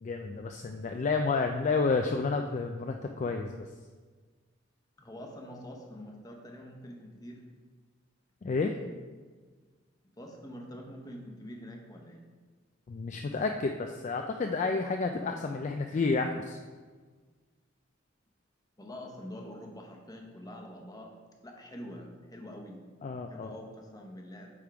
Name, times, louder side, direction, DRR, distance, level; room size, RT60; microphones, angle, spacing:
voice 1, 0.0-3.7 8.4-8.7 12.9-16.6 23.0-23.5, left 4 dB, 35° left, 4 dB, 0.3 m, -30 dB
voice 2, 5.0-7.4 10.2-12.2 18.8-21.1 21.4-22.8 23.3-24.5, equal, 20° left, 1 dB, 0.9 m, -45 dB
8.5 x 3.6 x 4.6 m, 1.4 s
head